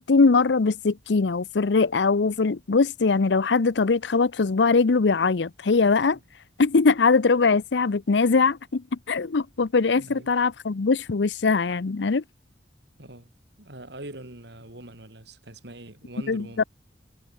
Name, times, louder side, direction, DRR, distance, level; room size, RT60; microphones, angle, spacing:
voice 1, 0.0-6.2 6.6-12.2 16.3-16.6, left 4 dB, 75° left, 0.6 m, -21 dB
voice 2, 10.0-10.3 13.0-13.3 13.6-16.6, right 1 dB, 70° right, 5.6 m, -43 dB
head